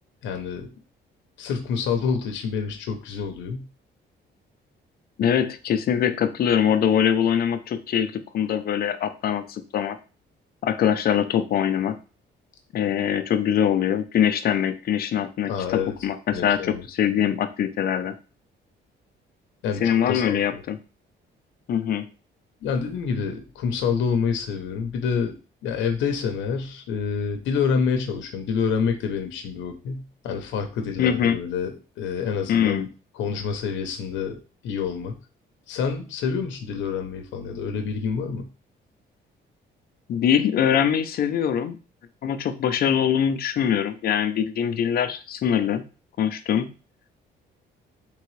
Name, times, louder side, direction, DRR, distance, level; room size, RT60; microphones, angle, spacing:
voice 1, 0.2-0.7 1.4-3.7 15.5-15.9 16.3-16.8 19.6-20.6 22.6-25.4 25.6-32.9 33.2-35.2 35.7-38.5, left 6 dB, 90° left, 5 dB, 0.7 m, -27 dB
voice 2, 5.2-10.0 10.6-12.0 12.7-18.1 19.8-20.8 21.7-22.1 31.0-31.4 32.5-32.9 40.1-41.8 42.2-45.8 46.2-46.7, left 9 dB, 55° left, 9 dB, 0.5 m, -23 dB
3.7 x 3.4 x 3.2 m, 0.35 s
cardioid pair, 130°, 19 cm